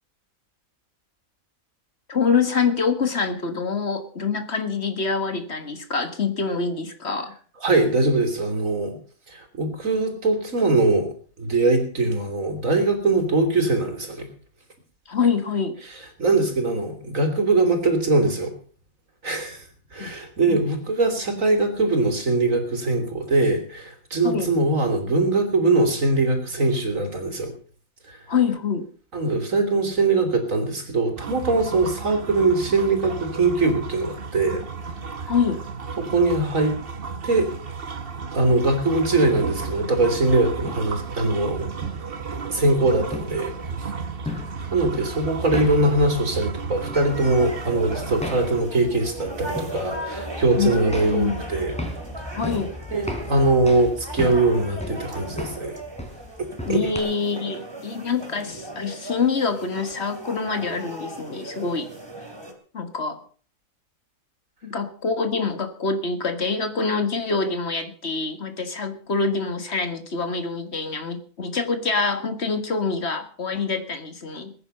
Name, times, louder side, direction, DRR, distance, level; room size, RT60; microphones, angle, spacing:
voice 1, 2.1-7.4 15.1-15.8 20.0-20.1 20.5-20.6 24.2-24.5 28.3-28.9 35.3-35.6 50.6-51.5 52.4-52.7 56.7-61.9 62.7-63.2 64.6-74.5, left 5 dB, 50° left, 8 dB, 1.9 m, -25 dB
voice 2, 7.6-9.0 9.3-14.3 16.2-18.5 19.2-19.6 19.9-27.5 28.1-28.2 29.1-34.6 36.0-36.8 37.2-37.5 38.3-41.7 42.3-43.5 43.8-43.9 44.7-51.7 52.9-55.8 56.4-56.8, right 2 dB, 70° right, 5 dB, 3.5 m, -22 dB
sound 1, 31.2-48.6, right 5 dB, 45° right, 1.3 m, -33 dB
sound 2, 39.3-57.0, left 1 dB, 5° left, 3.7 m, -37 dB
sound 3, 46.9-62.5, right 1 dB, 20° right, 2.8 m, -37 dB
21.0 x 9.7 x 5.6 m, 0.43 s
omnidirectional pair, 1.5 m